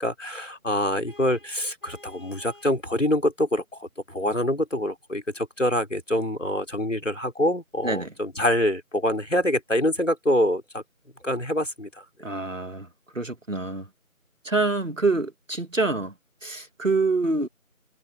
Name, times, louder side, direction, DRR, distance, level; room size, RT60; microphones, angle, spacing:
voice 1, 0.0-10.8 11.2-12.0, left 1 dB, 60° left, 4.6 m, -25 dB
Vehicle horn car horn honking, 1.1-2.8, left 2 dB, 40° left, 7.9 m, -51 dB
voice 2, 12.2-12.9 13.1-13.9 14.4-16.1 16.4-17.5, right 3 dB, 65° right, 2.2 m, -26 dB
figure-of-eight pair, 180°, 42 cm